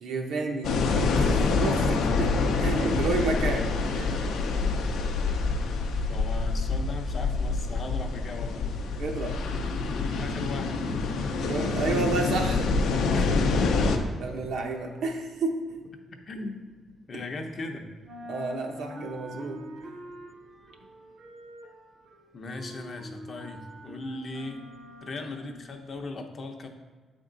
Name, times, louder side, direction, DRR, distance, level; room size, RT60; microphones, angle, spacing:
voice 1, 0.0-2.3 2.6-3.7 3.9-4.1 9.0-9.4 11.4-12.7 14.2-15.8 17.1-17.2 18.3-19.9, right 3 dB, 70° right, 2 dB, 0.8 m, -31 dB
sound 1, 0.6-14.0, left 4 dB, 80° left, 0.6 m, -26 dB
voice 2, 6.1-8.8 10.2-11.0 13.1-14.1 16.3-16.6 17.1-17.9 22.3-24.6 25.0-26.7, left 2 dB, 40° left, 4 dB, 0.6 m, -38 dB
sound 2, 15.2-17.7 17.9-26.1, equal, 35° right, 0.7 m, -46 dB
8.5 x 3.5 x 3.8 m, 1.4 s
cardioid pair, 135°, 0 cm